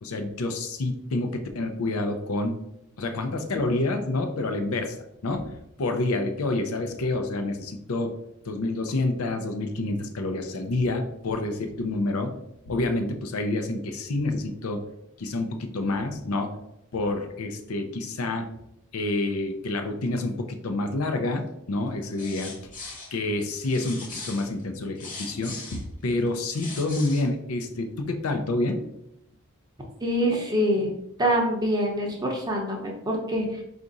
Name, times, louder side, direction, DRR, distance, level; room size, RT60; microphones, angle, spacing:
voice 1, 0.0-2.6 3.0-5.0 5.2-8.2 8.5-12.4 12.7-14.8 15.2-16.6 16.9-18.6 18.9-22.7 23.1-28.9, left 2 dB, 70° left, 6 dB, 0.6 m, -28 dB
sound 1, 22.1-23.1 23.6-25.8 26.3-27.3, left 3 dB, 35° left, 1.1 m, -39 dB
voice 2, 30.0-30.9 31.2-33.6, equal, 20° right, 0 dB, 0.7 m, -25 dB
4.6 x 2.5 x 3.9 m, 0.83 s
head